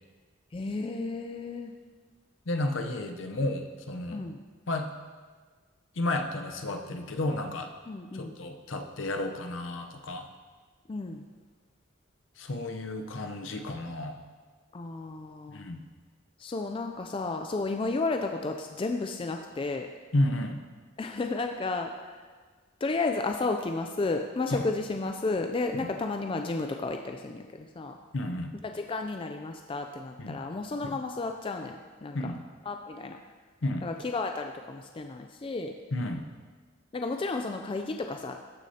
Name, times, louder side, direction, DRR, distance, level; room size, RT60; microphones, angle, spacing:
voice 1, 0.5-1.7 4.1-4.4 7.9-8.4 10.9-11.3 14.7-15.7 16.4-19.9 21.0-22.2 22.8-28.0 28.6-32.3 32.6-33.2 33.8-35.7 36.9-38.4, left 3 dB, 25° left, 4 dB, 0.3 m, -32 dB
voice 2, 2.5-4.2 4.7-4.9 6.0-7.7 8.1-10.3 12.4-14.1 15.5-15.8 20.1-20.6 24.5-24.7 25.7-25.9 28.1-28.5 30.2-30.4 30.9-31.0 32.1-32.4 33.6-33.9 35.9-36.2, left 1 dB, 65° left, 4 dB, 0.8 m, -32 dB
14.0 x 6.3 x 2.8 m, 1.5 s
head